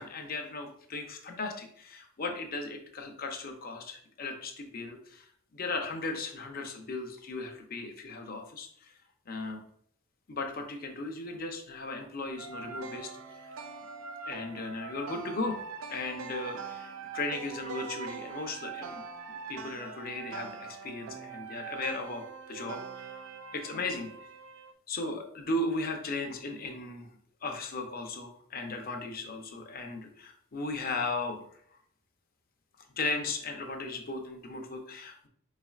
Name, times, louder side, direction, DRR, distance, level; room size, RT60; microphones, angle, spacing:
voice 1, 0.0-5.3 5.5-8.9 9.3-9.6 10.3-13.4 14.3-15.6 15.9-19.0 19.5-22.8 23.5-24.1 24.9-27.1 27.4-31.4 33.0-35.3, left 2 dB, 45° left, 4 dB, 0.7 m, -36 dB
sound 1, 12.4-24.7, right 5 dB, 70° right, 0.4 m, -43 dB
4.7 x 4.2 x 2.4 m, 0.64 s
head